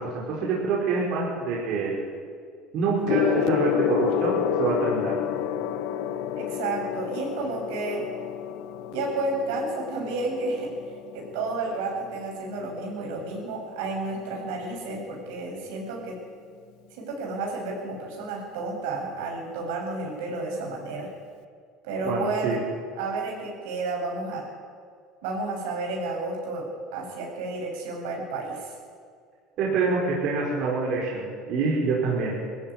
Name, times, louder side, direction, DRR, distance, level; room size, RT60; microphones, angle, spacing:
voice 1, 0.0-2.0 2.7-5.2 22.0-22.6 29.6-32.3, right 4 dB, 60° right, -4 dB, 5.6 m, -26 dB
Gong, 3.1-12.8 13.8-14.0, left 9 dB, 70° left, 1.1 m, -29 dB
voice 2, 6.4-8.0 8.9-10.7 11.1-16.2 16.9-21.1 21.8-22.6 23.0-24.4 25.2-28.7, right 3 dB, 85° right, -1 dB, 7.8 m, -31 dB
20.5 x 14.5 x 9.8 m, 2.1 s
supercardioid pair, 120°, 0 cm